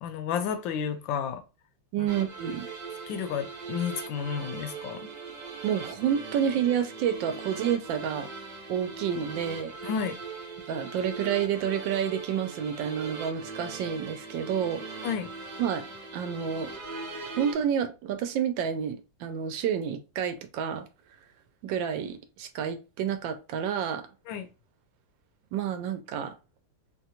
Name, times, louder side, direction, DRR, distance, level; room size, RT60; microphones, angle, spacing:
voice 1, 0.0-1.4 2.0-2.1 3.1-5.1 9.8-10.2 15.0-15.3 24.3-24.5, left 7 dB, 80° left, 1.3 m, -31 dB
voice 2, 1.9-2.7 5.6-8.3 8.7-9.7 10.7-15.1 15.6-15.8 16.1-16.7 17.4-20.9 21.6-24.0 25.5-26.3, right 8 dB, 75° right, 1.2 m, -29 dB
sound 1, 2.1-17.5, right 4 dB, 55° right, 1.1 m, -40 dB
3.8 x 2.2 x 2.9 m
omnidirectional pair, 2.1 m